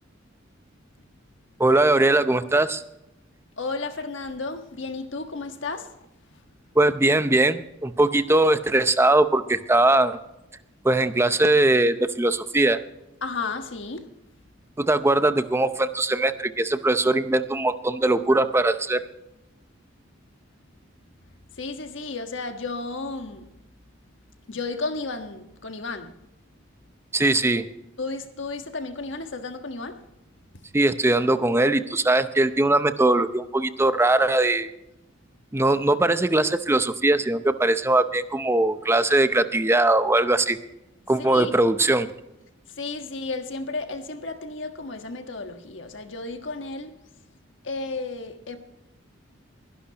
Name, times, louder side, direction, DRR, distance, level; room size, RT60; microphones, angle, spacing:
voice 1, 1.6-2.8 6.8-10.2 10.8-12.8 14.8-19.0 27.1-27.6 30.7-34.7 35.5-40.6 41.1-42.1, right 2 dB, 15° right, 0.6 m, -21 dB
voice 2, 3.6-5.9 13.2-14.0 21.6-23.5 24.5-26.1 27.5-27.6 28.0-30.0 41.2-41.5 42.8-46.9 47.6-48.6, left 3 dB, 65° left, 1.4 m, -33 dB
21.5 x 11.5 x 2.9 m
head